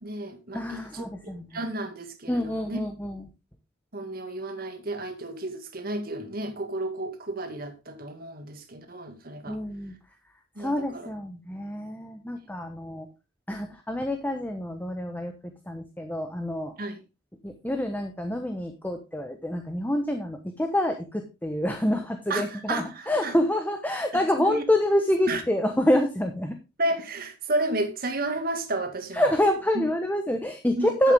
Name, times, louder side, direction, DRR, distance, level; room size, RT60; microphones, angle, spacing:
voice 1, 0.0-2.8 3.9-9.6 10.6-11.1 16.8-17.0 22.3-23.4 24.1-24.6 25.3-25.4 26.8-29.3 29.7-29.8 30.8-31.1, right 2 dB, 50° right, 2.1 m, -32 dB
voice 2, 0.5-1.4 2.3-3.2 9.5-9.9 10.6-13.1 13.5-15.3 15.7-16.7 17.4-26.6 29.1-31.1, left 1 dB, 10° left, 1.1 m, -27 dB
11.0 x 8.1 x 3.5 m
head